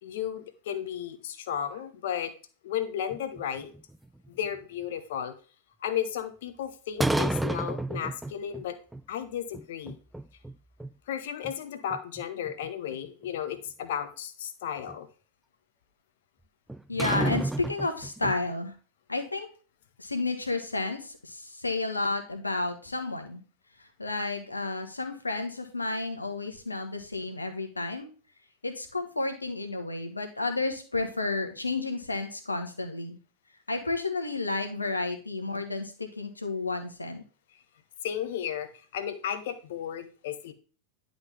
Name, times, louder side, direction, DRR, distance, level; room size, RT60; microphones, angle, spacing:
voice 1, 0.0-2.3 2.6-3.7 4.3-5.3 5.8-8.8 9.1-10.0 11.1-15.1 38.0-40.5, left 9 dB, 55° left, 9 dB, 0.9 m, -34 dB
sound 1, 3.1-4.5 7.0-8.6 8.9-9.0 9.5-10.6 10.8-10.9 11.4-11.5 11.9-13.3 14.9-15.0 16.7-18.5, right 1 dB, 5° right, 0.3 m, -31 dB
voice 2, 16.9-18.7 19.1-19.5 20.0-23.4 24.0-28.1 28.6-33.2 33.7-37.2, left 3 dB, 80° left, 6 dB, 1.3 m, -31 dB
10.5 x 3.9 x 3.4 m, 0.38 s
figure-of-eight pair, 90°, 0 cm